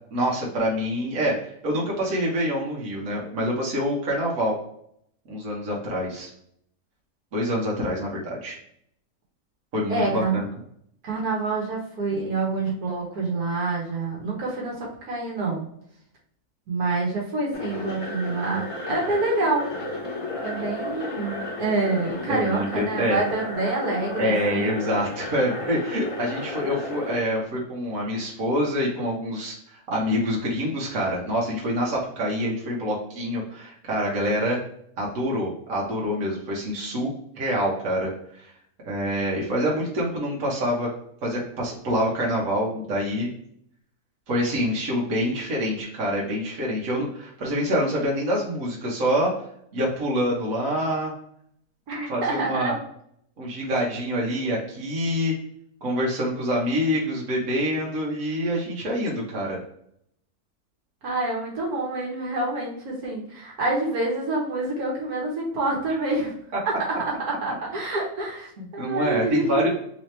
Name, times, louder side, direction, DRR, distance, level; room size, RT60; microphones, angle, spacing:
voice 1, 0.1-4.5 5.3-6.3 7.3-8.6 9.7-10.5 22.3-23.2 24.2-34.6 35.0-37.1 37.4-38.1 38.4-38.5 38.8-40.9 41.2-43.3 44.3-49.3 49.7-51.1 52.1-52.7 53.4-55.3 55.8-59.6 68.6-69.7, equal, 65° right, -4 dB, 1.5 m, -26 dB
voice 2, 9.9-10.3 11.0-15.6 16.7-19.7 20.4-24.7 51.9-52.8 61.0-66.3 66.7-66.8 67.2-69.7, right 2 dB, 80° right, -3 dB, 1.7 m, -27 dB
sound 1, 17.5-27.2, left 2 dB, 45° left, 0.4 m, -34 dB
3.8 x 3.0 x 3.2 m, 0.69 s
omnidirectional pair, 1.6 m